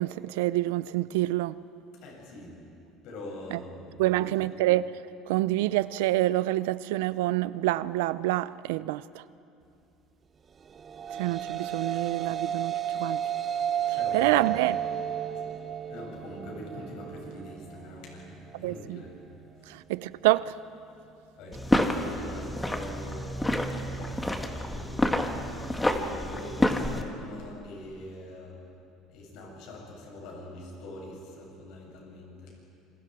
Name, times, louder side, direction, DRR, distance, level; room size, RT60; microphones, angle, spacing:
voice 1, 0.0-1.6 3.5-3.6 4.0-5.0 5.3-9.2 11.1-13.2 13.9-14.8 18.5-19.0 19.7-20.5, right 16 dB, 90° right, 0.5 m, -27 dB
voice 2, 1.9-2.6 3.0-4.6 14.0-14.6 15.3-15.4 15.9-19.1 19.6-19.8 21.4-23.6 23.9-25.1 25.6-28.6 29.1-32.6, left 1 dB, 70° left, 7.6 m, -43 dB
sound 1, 10.7-19.2, right 9 dB, 35° right, 1.0 m, -33 dB
sound 2, 21.5-27.0, left 1 dB, 10° left, 1.8 m, -28 dB
27.0 x 26.5 x 4.8 m
supercardioid pair, 105°, 0 cm